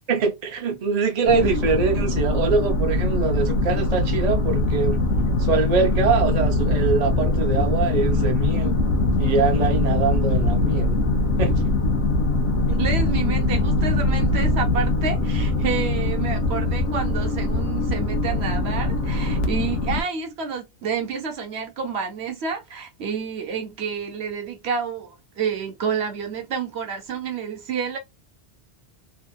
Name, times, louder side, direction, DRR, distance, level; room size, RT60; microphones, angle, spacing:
voice 1, 0.1-5.0 5.4-8.7 9.2-11.0 11.4-11.5, right 4 dB, 40° right, 0.8 m, -23 dB
sound 1, 1.3-20.0, left 2 dB, 80° left, 1.0 m, -22 dB
voice 2, 12.7-28.0, right 6 dB, 70° right, 1.1 m, -29 dB
2.9 x 2.8 x 2.3 m
omnidirectional pair, 1.1 m